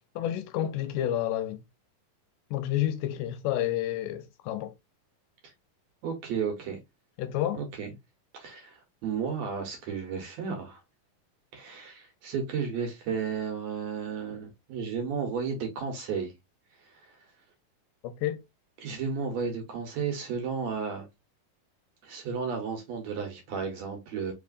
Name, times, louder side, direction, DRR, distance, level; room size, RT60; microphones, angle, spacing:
voice 1, 0.2-1.6 2.5-4.7 7.2-7.6 18.0-18.4, left 12 dB, 80° left, 2.1 m, -30 dB
voice 2, 6.0-6.8 7.5-7.9 8.3-10.8 11.5-16.3 16.8-17.2 18.8-21.1 22.0-24.3, right 6 dB, 65° right, 1.9 m, -33 dB
4.7 x 3.3 x 2.5 m
omnidirectional pair, 3.9 m